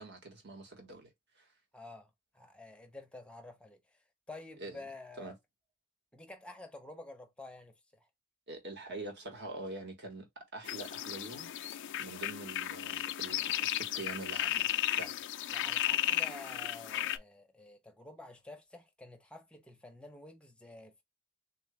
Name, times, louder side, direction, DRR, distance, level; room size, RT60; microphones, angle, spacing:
voice 1, 0.0-1.5 4.6-4.8 5.2-5.3 8.5-11.5 12.0-15.2, right 2 dB, 55° right, 1.4 m, -45 dB
voice 2, 1.7-3.8 4.3-5.4 6.1-8.1 15.5-21.0, left 2 dB, 5° left, 0.7 m, -50 dB
sound 1, 10.6-17.2, left 12 dB, 60° left, 0.4 m, -34 dB
3.8 x 2.6 x 3.3 m
head